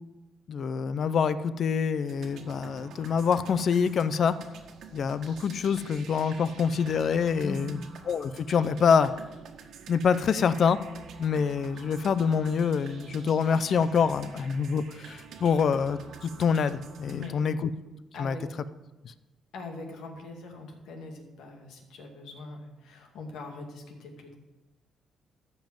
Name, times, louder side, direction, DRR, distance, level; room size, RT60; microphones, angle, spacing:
voice 1, 0.5-4.4 4.9-7.8 8.1-9.1 9.9-10.8 11.2-17.7 18.2-18.3 19.0-19.1, left 6 dB, 55° left, 14 dB, 0.6 m, -26 dB
sound 1, 2.0-17.3, right 6 dB, 70° right, 1.6 m, -48 dB
voice 2, 7.4-7.8 17.1-17.6 18.1-18.5 19.5-24.3, left 3 dB, 80° left, 2 dB, 2.4 m, -41 dB
14.0 x 5.4 x 7.7 m, 1.1 s
cardioid pair, 90°, 0 cm